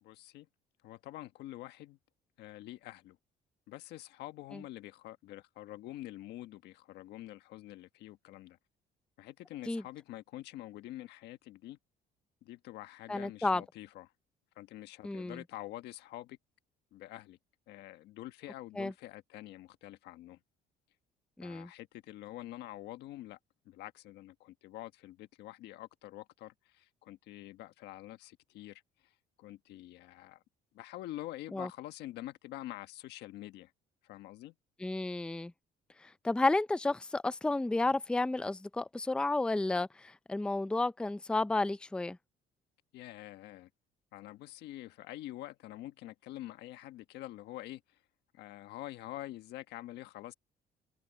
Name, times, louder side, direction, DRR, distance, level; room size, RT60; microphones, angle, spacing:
voice 1, 0.0-0.5 0.8-2.0 2.4-3.2 3.7-8.6 9.2-11.8 12.4-14.1 14.5-16.4 16.9-17.4 17.7-20.4 21.4-23.4 23.6-30.4 30.7-33.7 34.0-34.5 42.9-43.7 44.1-48.0 48.3-50.3, left 15 dB, 80° left, 1.4 m, -46 dB
voice 2, 13.1-13.6 15.0-15.4 18.8-18.9 21.4-21.7 31.5-31.7 34.8-35.5 36.0-42.2, left 2 dB, 5° left, 0.5 m, -32 dB
cardioid pair, 110°, 17 cm